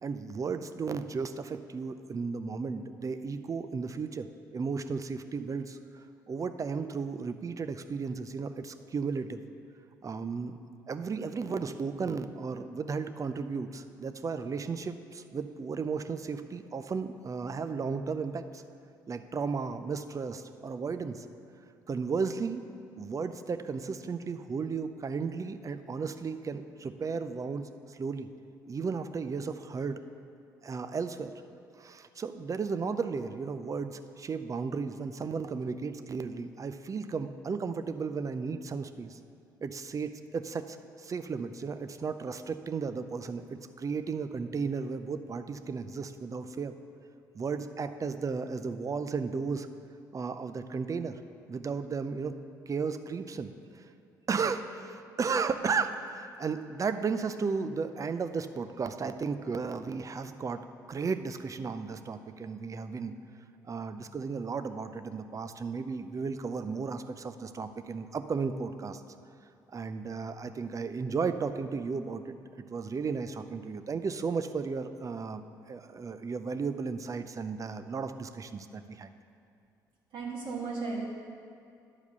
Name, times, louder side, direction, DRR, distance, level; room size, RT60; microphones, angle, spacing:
voice 1, 0.0-4.3 4.5-9.4 10.0-10.6 10.9-18.6 19.1-21.3 21.9-22.6 23.0-28.3 28.7-30.0 30.6-31.3 31.8-39.2 39.6-46.7 47.3-49.7 50.1-51.2 51.5-52.3 52.7-53.9 54.3-60.6 60.9-63.1 63.6-69.0 69.7-72.4 72.7-79.1, right 5 dB, 30° right, 10 dB, 0.6 m, -34 dB
voice 2, 80.1-81.0, right 4 dB, 65° right, -7 dB, 2.6 m, -35 dB
10.5 x 4.8 x 6.8 m, 2.5 s
hypercardioid pair, 50°, 10 cm